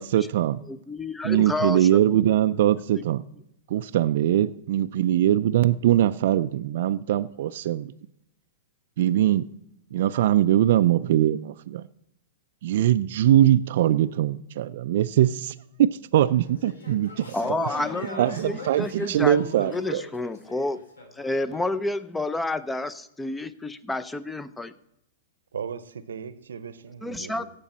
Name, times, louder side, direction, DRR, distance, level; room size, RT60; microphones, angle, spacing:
voice 1, 0.0-0.6 1.2-3.2 3.7-7.9 9.0-9.5 9.9-11.8 12.6-17.3 18.2-20.0, right 12 dB, 60° right, 0.3 m, -22 dB
voice 2, 0.7-2.0 17.3-20.8 21.2-24.7 27.0-27.5, left 2 dB, 10° left, 0.6 m, -30 dB
sound 1, 16.3-21.6, left 2 dB, 80° left, 2.8 m, -41 dB
voice 3, 25.5-27.5, right 7 dB, 80° right, 0.7 m, -37 dB
16.5 x 6.9 x 4.1 m
hypercardioid pair, 115°, 0 cm